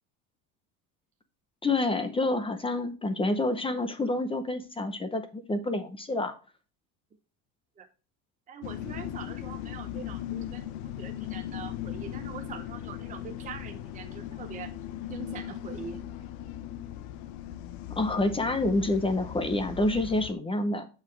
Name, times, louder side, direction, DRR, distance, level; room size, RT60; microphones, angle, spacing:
voice 1, 1.6-6.3 18.0-20.9, left 2 dB, 15° left, 9 dB, 0.7 m, -28 dB
voice 2, 8.5-14.7 15.1-16.0, right 7 dB, 20° right, 4 dB, 0.7 m, -43 dB
sound 1, 8.6-20.3, left 12 dB, 65° left, 0.8 m, -38 dB
8.1 x 4.9 x 3.2 m, 0.34 s
cardioid pair, 140°, 38 cm